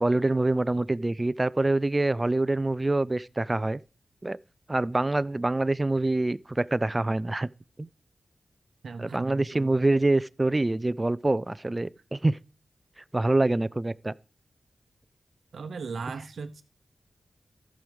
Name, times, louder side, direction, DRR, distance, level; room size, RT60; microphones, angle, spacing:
voice 1, 0.0-3.8 4.2-4.4 4.7-7.5 7.8-7.9 9.0-12.4 13.1-14.1, right 2 dB, 25° right, 0.5 m, -25 dB
voice 2, 8.8-9.8 15.5-16.6, right 4 dB, 85° right, 0.8 m, -37 dB
14.0 x 6.3 x 5.3 m
cardioid pair, 55°, 0 cm